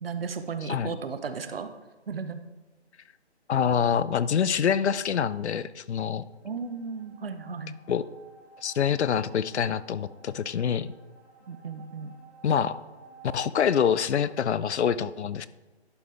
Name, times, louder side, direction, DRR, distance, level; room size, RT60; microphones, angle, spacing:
voice 1, 0.0-1.7 2.1-2.4 6.4-7.7 11.5-12.1, right 5 dB, 60° right, 9 dB, 0.8 m, -35 dB
voice 2, 3.5-6.2 7.9-8.0 8.6-10.9 12.4-12.8 13.3-15.5, left 8 dB, 80° left, 16 dB, 0.5 m, -26 dB
sound 1, 6.3-14.4, right 5 dB, 5° left, 1.0 m, -53 dB
11.0 x 5.2 x 3.3 m, 1.2 s
hypercardioid pair, 170°, 34 cm